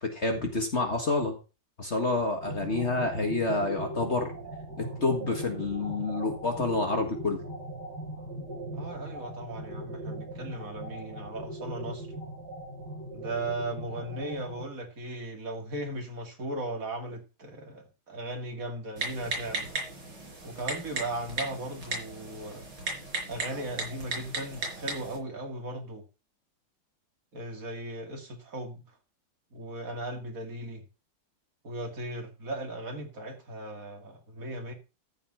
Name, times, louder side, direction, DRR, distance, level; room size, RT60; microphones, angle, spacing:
voice 1, 0.0-1.3 1.8-4.3 4.8-7.4, left 3 dB, 35° left, 1.9 m, -28 dB
sound 1, 2.4-14.6, right 1 dB, 60° right, 8.6 m, -40 dB
voice 2, 8.7-12.2 13.1-19.7 20.4-22.7 23.3-26.0 27.3-28.8 29.5-30.8 31.6-34.7, right 1 dB, 45° right, 2.9 m, -37 dB
Typing, 19.0-25.2, right 3 dB, 80° right, 5.5 m, -36 dB
14.0 x 5.8 x 5.6 m
omnidirectional pair, 2.1 m